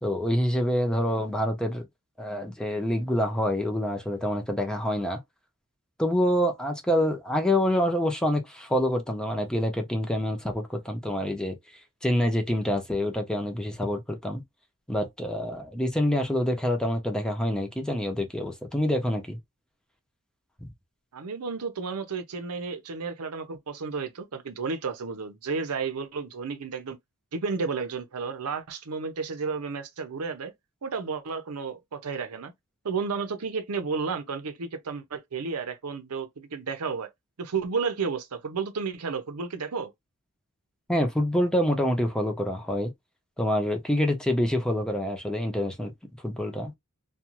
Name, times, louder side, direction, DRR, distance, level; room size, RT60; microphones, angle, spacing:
voice 1, 0.0-1.8 2.2-5.2 6.0-11.6 12.0-14.4 14.9-19.4 20.6-20.7 40.9-42.9 43.4-45.9 46.2-46.7, equal, 5° left, 0.6 m, -26 dB
voice 2, 21.1-27.0 27.3-30.5 30.8-32.5 32.8-37.1 37.4-39.9, right 5 dB, 80° right, 0.6 m, -32 dB
2.5 x 2.3 x 2.9 m
head